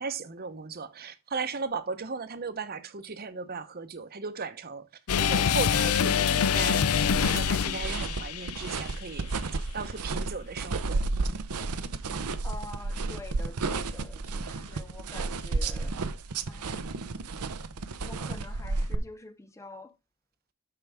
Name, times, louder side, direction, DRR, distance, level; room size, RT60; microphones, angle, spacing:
voice 1, 0.0-4.9 5.2-7.0 7.2-9.3 9.7-11.0, right 4 dB, 45° right, 0.8 m, -36 dB
sound 1, 5.1-8.9, left 7 dB, 75° left, 0.5 m, -25 dB
sound 2, 7.0-19.0, right 3 dB, 85° right, 0.7 m, -32 dB
voice 2, 12.4-16.0 16.5-16.8 18.0-19.9, left 2 dB, 15° left, 0.4 m, -46 dB
12.5 x 4.9 x 3.5 m
head